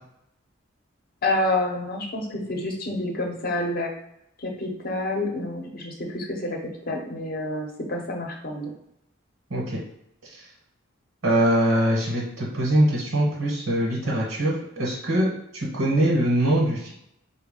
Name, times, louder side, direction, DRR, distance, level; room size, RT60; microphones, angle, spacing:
voice 1, 1.2-3.9 4.4-8.7, left 2 dB, 45° left, 2 dB, 0.7 m, -28 dB
voice 2, 11.2-16.9, right 1 dB, 75° right, -4 dB, 1.1 m, -23 dB
4.6 x 2.2 x 3.6 m, 0.79 s
head